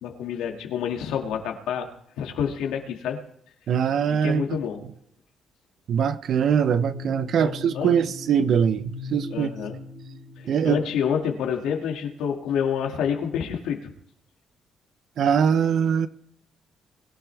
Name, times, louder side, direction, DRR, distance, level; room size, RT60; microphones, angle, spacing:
voice 1, 0.0-1.9 2.2-3.2 4.1-4.9 7.4-8.0 9.3-9.8 10.4-13.9, left 8 dB, 90° left, 2.2 m, -28 dB
voice 2, 3.7-4.6 5.9-9.5 10.5-10.8 15.2-16.1, right 7 dB, 65° right, 0.8 m, -22 dB
sound 1, 6.7-10.8, left 1 dB, 45° right, 4.5 m, -38 dB
23.0 x 12.0 x 3.5 m
cardioid pair, 90°, 0 cm